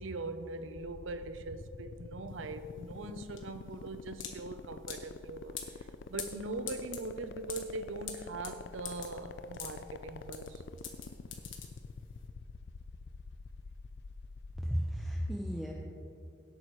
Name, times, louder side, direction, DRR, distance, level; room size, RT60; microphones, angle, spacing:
voice 1, 0.0-10.6, right 2 dB, 85° right, 10 dB, 0.7 m, -41 dB
sound 1, 0.7-14.7, left 4 dB, 55° left, 0.4 m, -46 dB
sound 2, 2.3-12.2, left 8 dB, 80° left, 1.4 m, -45 dB
voice 2, 14.6-15.7, equal, ahead, -2 dB, 0.6 m, -34 dB
17.5 x 8.4 x 3.1 m, 2.7 s
head